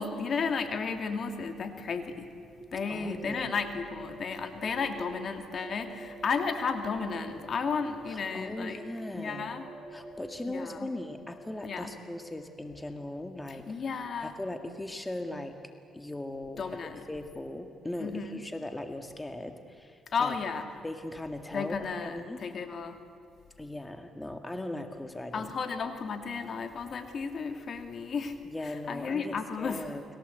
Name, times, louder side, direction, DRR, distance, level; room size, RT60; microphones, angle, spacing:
voice 1, 0.0-2.3 2.7-8.8 9.1-9.7 10.5-10.9 11.6-11.9 13.7-14.4 16.6-17.0 18.0-18.4 20.1-20.6 21.5-23.0 25.3-28.3 28.6-29.9, left 5 dB, 50° left, 6 dB, 2.7 m, -33 dB
sound 1, 2.6-14.3, right 2 dB, 45° right, 3.3 m, -48 dB
voice 2, 2.9-3.6 8.1-9.5 9.9-15.6 15.9-20.4 20.8-22.4 23.6-25.5 28.4-30.0, left 1 dB, 10° left, 6 dB, 1.9 m, -39 dB
30.0 x 22.0 x 8.2 m, 2.4 s
cardioid pair, 90°, 0 cm